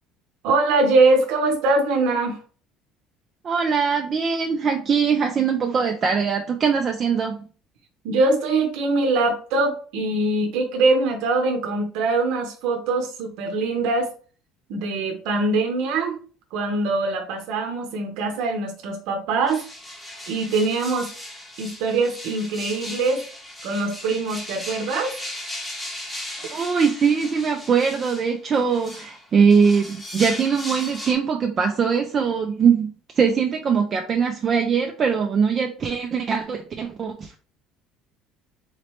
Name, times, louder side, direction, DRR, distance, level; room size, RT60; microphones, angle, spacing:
voice 1, 0.4-2.4 8.0-14.1 14.7-16.2 16.5-19.6 20.3-21.1 21.6-23.2 23.6-25.1, right 3 dB, 65° right, 4 dB, 0.8 m, -22 dB
voice 2, 3.4-7.4 26.5-37.3, right 6 dB, 25° right, 3 dB, 0.4 m, -21 dB
sound 1, 19.5-31.1, left 1 dB, 5° left, 0.8 m, -37 dB
4.0 x 3.1 x 3.0 m, 0.39 s
cardioid pair, 165°, 0 cm